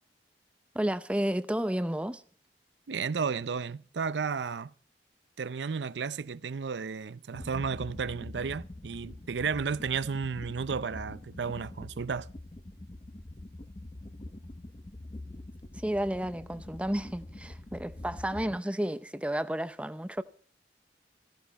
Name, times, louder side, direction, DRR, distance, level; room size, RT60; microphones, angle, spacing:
voice 1, 0.7-2.2 15.7-20.2, right 1 dB, 5° right, 0.6 m, -31 dB
voice 2, 2.9-4.7 5.4-12.3, right 5 dB, 85° right, 0.5 m, -33 dB
sound 1, 7.3-18.6, left 1 dB, 30° left, 0.8 m, -45 dB
15.5 x 14.5 x 4.1 m
head